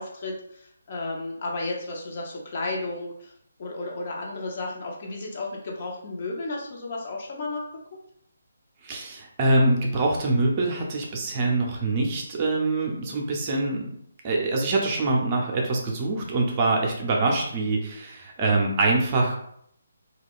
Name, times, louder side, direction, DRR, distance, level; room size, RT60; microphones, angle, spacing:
voice 1, 0.0-3.3 3.6-7.6, left 2 dB, 45° left, -1 dB, 0.7 m, -33 dB
voice 2, 8.8-13.8 14.2-19.4, right 2 dB, 30° right, 0 dB, 0.6 m, -24 dB
2.3 x 2.2 x 3.5 m, 0.70 s
figure-of-eight pair, 150°, 0 cm